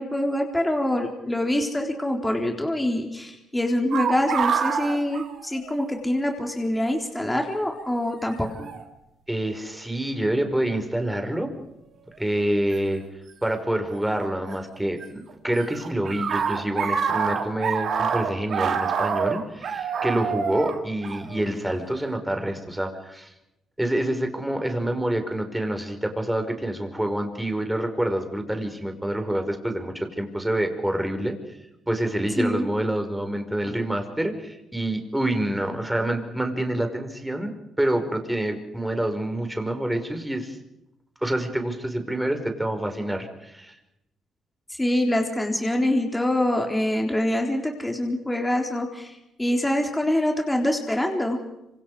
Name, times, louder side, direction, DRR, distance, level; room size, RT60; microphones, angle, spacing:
voice 1, 0.0-8.7 32.4-32.7 44.7-51.4, left 1 dB, 10° left, 2 dB, 3.9 m, -25 dB
sound 1, 3.9-6.0 6.3-6.4 7.3-7.6 8.6-8.8 9.6-10.1 12.7-12.8 14.2-15.0 15.3-21.9, right 6 dB, 60° right, 3.2 m, -27 dB
voice 2, 9.3-11.5 12.2-13.0 13.4-23.3 23.8-31.4 31.9-40.6 41.2-43.7, right 1 dB, 5° right, 5 dB, 5.2 m, -27 dB
26.5 x 26.5 x 5.0 m, 0.88 s
cardioid pair, 90°, 0 cm